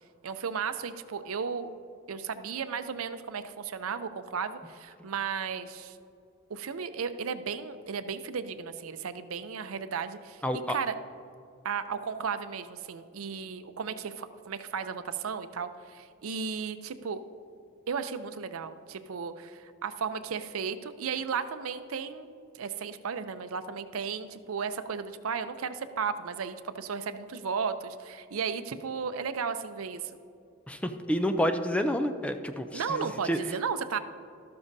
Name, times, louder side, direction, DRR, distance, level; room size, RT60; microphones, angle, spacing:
voice 1, 0.2-1.7 2.1-6.0 6.5-10.4 10.7-11.0 11.6-17.2 17.9-22.3 22.5-30.1 32.7-34.0, right 6 dB, 85° right, 11 dB, 0.5 m, -34 dB
voice 2, 10.4-10.8 30.7-33.4, equal, 5° left, 7 dB, 0.4 m, -29 dB
13.0 x 12.5 x 2.7 m, 2.4 s
head